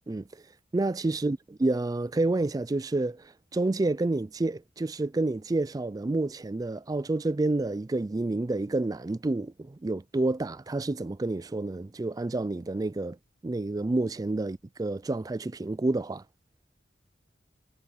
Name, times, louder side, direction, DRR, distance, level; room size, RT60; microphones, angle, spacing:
voice 1, 0.7-3.2 3.5-13.2 13.4-16.2, right 2 dB, 20° right, 0.3 m, -29 dB
head